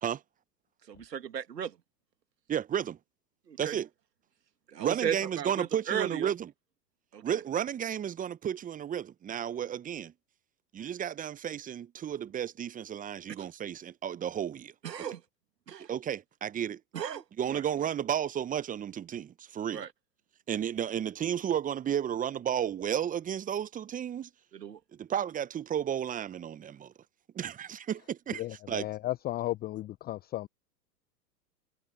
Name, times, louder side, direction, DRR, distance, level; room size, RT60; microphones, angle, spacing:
voice 1, 0.9-1.7 3.5-3.8 4.7-6.3 7.1-7.4 13.4-13.5 14.8-15.2 15.7-15.9 16.9-17.2 17.5-17.6 19.7-19.9 24.5-24.8, right 8 dB, 75° right, 2.1 m, -35 dB
voice 2, 2.5-3.0 3.6-3.9 4.8-6.5 7.2-10.1 10.7-14.7 15.9-16.8 17.4-19.9 20.5-24.3 25.0-26.9 27.3-28.9, right 9 dB, 15° right, 0.9 m, -33 dB
voice 3, 28.3-30.5, left 15 dB, 20° left, 0.6 m, -34 dB
figure-of-eight pair, 100°, 49 cm